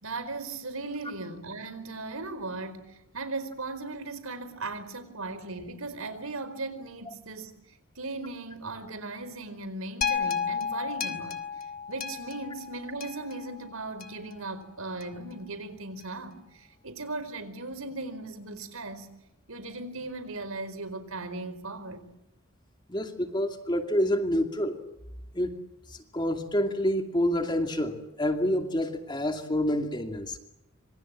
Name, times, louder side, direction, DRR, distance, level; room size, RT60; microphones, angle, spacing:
voice 1, 0.0-7.5 8.0-11.4 11.9-19.1 19.5-22.0, right 2 dB, 85° right, 4.6 m, -37 dB
sound 1, 10.0-14.3 15.0-15.1, left 6 dB, 45° left, 2.6 m, -33 dB
voice 2, 22.9-24.8 25.3-25.6 25.9-30.4, equal, 20° left, 2.5 m, -28 dB
27.0 x 26.5 x 7.6 m
head